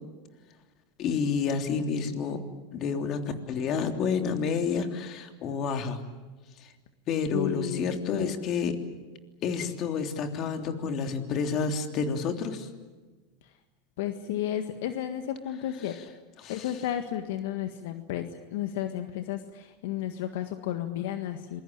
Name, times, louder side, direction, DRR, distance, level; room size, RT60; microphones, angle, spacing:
voice 1, 1.0-2.4 2.7-3.2 3.5-6.0 7.1-8.8 9.4-12.7 15.8-15.9 16.4-16.7, left 5 dB, 45° left, 6 dB, 3.3 m, -29 dB
voice 2, 7.3-7.9 8.2-8.3 14.0-16.0 16.5-21.6, left 11 dB, 75° left, 8 dB, 1.7 m, -32 dB
27.5 x 22.0 x 9.0 m, 1.3 s
supercardioid pair, 115°, 0 cm